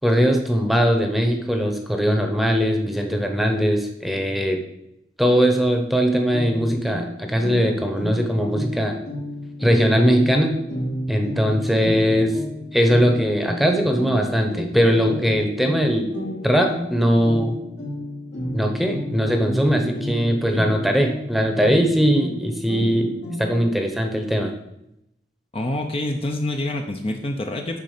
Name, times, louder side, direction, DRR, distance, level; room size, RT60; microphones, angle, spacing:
voice 1, 0.0-4.6 5.2-9.0 9.6-10.6 11.1-12.4 12.7-16.1 16.4-17.6 18.5-23.1 23.4-24.5, equal, ahead, 4 dB, 1.0 m, -20 dB
sound 1, 6.3-23.8, equal, 80° left, 3.5 m, -32 dB
voice 2, 25.5-27.8, left 1 dB, 30° left, 3 dB, 0.7 m, -26 dB
9.6 x 4.1 x 6.7 m, 0.83 s
head